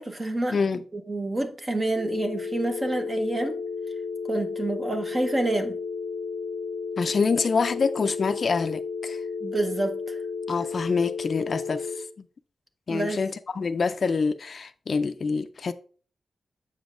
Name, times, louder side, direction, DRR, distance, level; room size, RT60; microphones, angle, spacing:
voice 1, 0.0-3.6 4.3-5.8 9.4-10.2 12.9-13.2, right 2 dB, 20° right, 0.8 m, -28 dB
voice 2, 0.5-0.8 7.0-9.2 10.5-12.1 12.9-15.7, left 5 dB, 45° left, 0.3 m, -26 dB
sound 1, 1.9-12.0, left 5 dB, 45° right, 3.6 m, -33 dB
7.7 x 7.1 x 2.5 m
wide cardioid pair, 175°, 0 cm